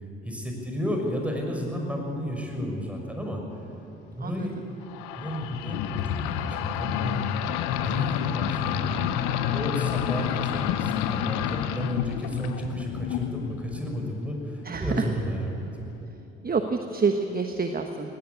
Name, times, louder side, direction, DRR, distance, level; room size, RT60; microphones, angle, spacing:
voice 1, 0.2-3.4 4.1-4.7 5.2-7.2 7.8-9.1 9.5-15.9, equal, 5° right, 1 dB, 6.0 m, -32 dB
sound 1, 4.9-14.2, left 10 dB, 70° left, 1.0 m, -29 dB
voice 2, 16.4-18.1, right 4 dB, 25° right, 6 dB, 1.3 m, -27 dB
19.0 x 16.5 x 8.5 m, 3.0 s
hypercardioid pair, 50°, 33 cm